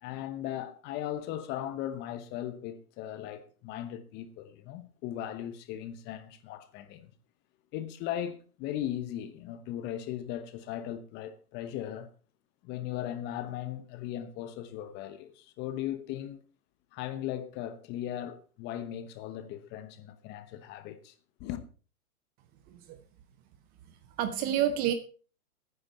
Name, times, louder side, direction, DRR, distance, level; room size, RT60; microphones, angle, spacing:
voice 1, 0.0-7.1 7.7-12.1 12.6-16.4 16.9-21.1 21.4-21.6, left 11 dB, 25° left, 1.1 m, -38 dB
voice 2, 22.7-23.0 24.2-24.9, right 10 dB, 20° right, 0.7 m, -29 dB
14.5 x 9.8 x 4.3 m
hypercardioid pair, 140°, 44 cm